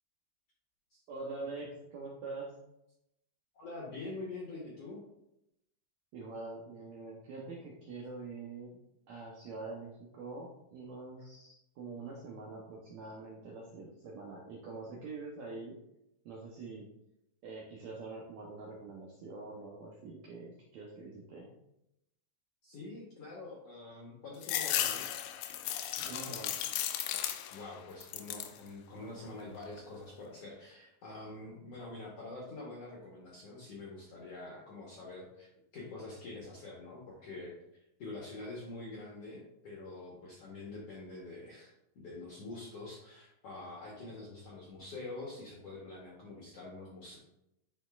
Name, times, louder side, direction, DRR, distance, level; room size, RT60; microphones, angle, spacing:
voice 1, 1.1-2.5 6.1-8.8 9.1-15.8 16.2-16.9 17.4-21.5 26.0-26.5, right 3 dB, 75° right, -2 dB, 1.7 m, -45 dB
voice 2, 3.5-5.0 22.6-25.1 27.5-37.5 38.0-47.2, left 2 dB, 70° left, -4 dB, 1.5 m, -46 dB
sound 1, 24.4-27.7 28.0-28.6 29.1-29.8, left 11 dB, 85° left, 2.4 m, -35 dB
10.0 x 4.1 x 2.4 m, 0.84 s
omnidirectional pair, 4.2 m